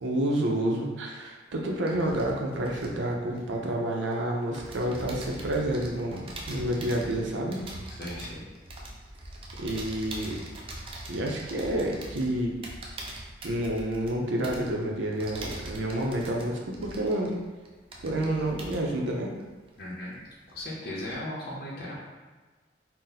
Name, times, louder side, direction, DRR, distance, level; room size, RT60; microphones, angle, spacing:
voice 1, 0.0-7.6 9.6-10.4 11.1-12.6 13.4-17.3 18.0-19.3, right 1 dB, 85° right, 0 dB, 0.5 m, -29 dB
sound 1, 1.5-4.1 4.5-20.2 20.5-21.1, right 1 dB, 30° right, 0.4 m, -43 dB
voice 2, 7.9-8.4 19.8-20.2 20.5-22.0, left 1 dB, 55° left, -6 dB, 0.7 m, -37 dB
2.7 x 2.0 x 3.8 m, 1.3 s
head